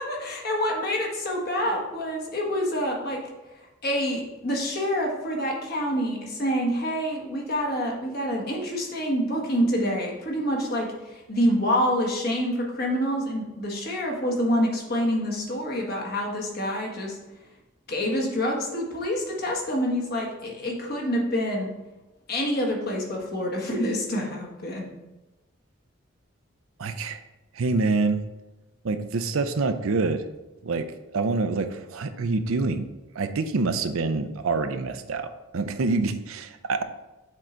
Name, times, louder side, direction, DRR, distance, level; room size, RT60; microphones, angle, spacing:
voice 1, 0.0-3.2 3.8-17.2 17.9-21.7 22.3-24.9, equal, 45° left, -1 dB, 1.4 m, -27 dB
voice 2, 26.8-27.2 27.5-28.2 28.8-30.2 30.6-30.9 31.1-32.9 33.2-36.8, right 3 dB, 80° right, 9 dB, 0.5 m, -26 dB
7.5 x 3.8 x 4.4 m, 1.0 s
head